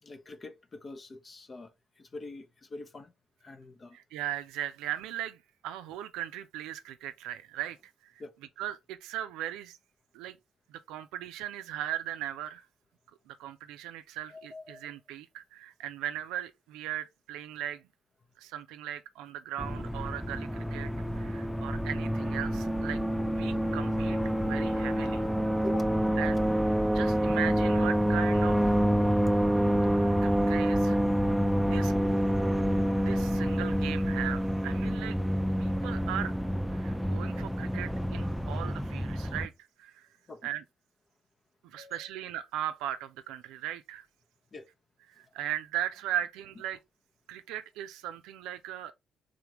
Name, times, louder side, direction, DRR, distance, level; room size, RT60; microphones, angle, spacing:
voice 1, 0.0-3.1 3.4-4.0 8.2-8.3 14.3-14.9 21.4-21.5 25.6-26.0 40.3-40.5 41.8-42.1 44.5-44.7, left 2 dB, 40° left, 0.8 m, -44 dB
voice 2, 3.9-8.2 8.6-9.8 10.1-10.4 10.7-12.7 13.3-17.8 18.4-23.0 23.3-24.2 24.4-25.2 26.2-26.4 26.9-28.7 30.2-31.0 31.6-31.9 33.0-35.2 35.6-36.4 36.7-39.5 39.8-40.1 40.4-40.6 41.6-44.1 45.1-46.8 47.3-48.9, right 12 dB, 80° right, 0.4 m, -38 dB
sound 1, 19.6-39.5, equal, ahead, 0.5 m, -27 dB
3.7 x 3.5 x 2.9 m
hypercardioid pair, 50°, 0 cm